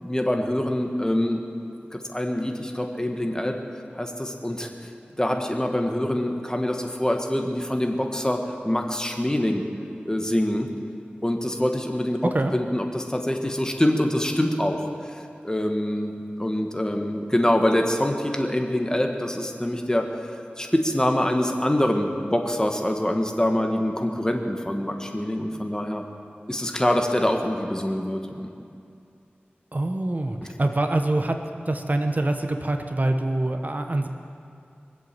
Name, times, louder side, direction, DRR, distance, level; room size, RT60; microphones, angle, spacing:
voice 1, 0.0-1.4 1.9-3.6 4.0-4.7 5.2-9.6 10.1-10.7 11.2-12.2 12.5-14.9 15.4-20.1 20.6-26.0 26.5-28.5, left 1 dB, 20° left, 3 dB, 1.7 m, -25 dB
voice 2, 29.7-31.4 31.7-34.1, right 2 dB, 45° right, 6 dB, 1.0 m, -25 dB
23.5 x 8.0 x 7.7 m, 2.5 s
wide cardioid pair, 45°, 4 cm